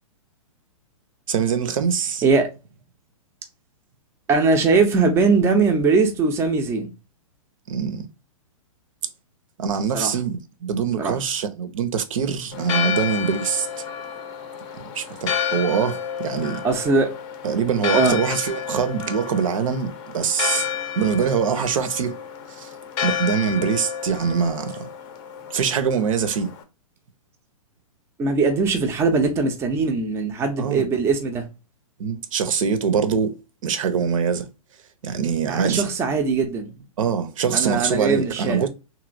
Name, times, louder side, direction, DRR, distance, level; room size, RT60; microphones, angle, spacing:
voice 1, 1.3-2.2 7.7-8.0 9.6-13.9 14.9-16.6 17.4-20.7 21.0-22.2 22.6-22.7 23.0-24.9 25.5-26.6 30.6-30.9 32.0-33.3 33.6-34.5 35.0-35.8 37.0-38.7, right 6 dB, 65° right, 0.7 m, -23 dB
voice 2, 4.3-6.9 9.9-10.1 11.0-11.2 16.6-17.1 18.0-18.2 28.2-31.5 35.5-36.8 37.5-38.7, right 4 dB, 15° right, 0.5 m, -20 dB
Church bell, 12.5-26.6, left 8 dB, 30° left, 0.6 m, -30 dB
3.0 x 2.7 x 2.5 m
hypercardioid pair, 135°, 18 cm